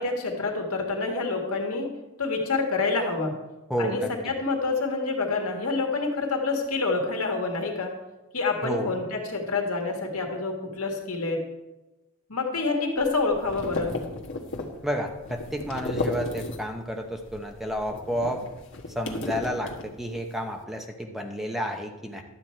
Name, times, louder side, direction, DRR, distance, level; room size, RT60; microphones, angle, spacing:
voice 1, 0.0-1.9 2.2-3.4 3.8-7.9 8.3-11.4 12.3-13.9, left 3 dB, 85° left, 2 dB, 1.9 m, -27 dB
voice 2, 3.7-4.3 8.6-8.9 14.8-18.4 18.9-22.2, equal, ahead, 3 dB, 0.9 m, -31 dB
sound 1, 13.0-16.9 17.2-20.3, left 2 dB, 60° left, 1.3 m, -35 dB
12.0 x 8.1 x 4.5 m, 1.1 s
head